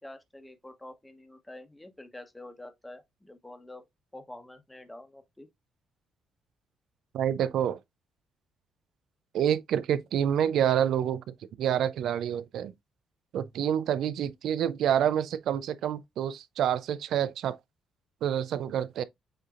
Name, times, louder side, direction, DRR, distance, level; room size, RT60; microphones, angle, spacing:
voice 1, 0.0-3.8 4.1-5.5, left 1 dB, 10° left, 1.0 m, -47 dB
voice 2, 7.1-7.8 9.3-12.7 13.3-17.6 18.2-19.0, right 9 dB, 75° right, 0.4 m, -28 dB
7.6 x 2.8 x 2.5 m
cardioid pair, 90°, 0 cm